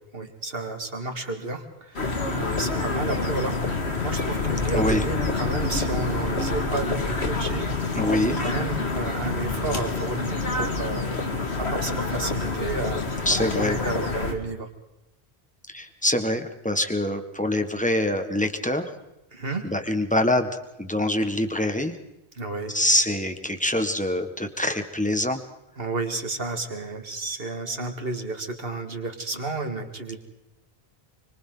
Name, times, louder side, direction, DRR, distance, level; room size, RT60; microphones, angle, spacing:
voice 1, 0.1-7.7 8.4-11.1 11.6-13.0 13.3-14.7 19.3-19.6 22.3-22.8 25.8-30.2, right 3 dB, 65° right, 5 dB, 2.5 m, -31 dB
sound 1, 2.0-14.3, left 3 dB, 85° left, 2.5 m, -27 dB
voice 2, 7.9-8.4 13.2-13.8 15.7-18.9 19.6-21.9 22.7-25.4, left 1 dB, 5° left, 7 dB, 1.6 m, -25 dB
27.0 x 25.0 x 4.0 m, 0.92 s
omnidirectional pair, 1.1 m